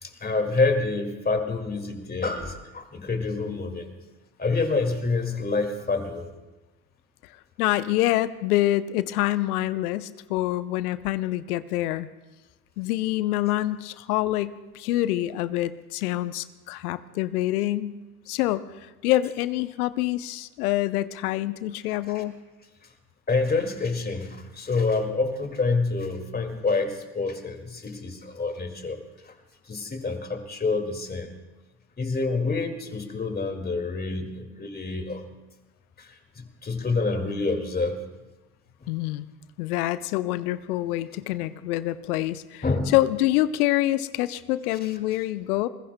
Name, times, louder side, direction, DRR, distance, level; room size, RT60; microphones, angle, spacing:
voice 1, 0.0-3.9 4.4-6.3 22.1-22.2 23.3-29.3 29.6-31.3 32.0-35.2 36.0-38.0 42.6-42.9 44.8-44.9, left 3 dB, 20° left, 6 dB, 2.1 m, -27 dB
voice 2, 7.6-12.1 12.8-18.0 18.3-18.6 19.0-22.4 38.9-39.3 39.6-42.6 42.9-45.7, left 15 dB, 70° left, 15 dB, 0.8 m, -26 dB
27.5 x 21.0 x 2.2 m, 1.1 s
hypercardioid pair, 65°, 46 cm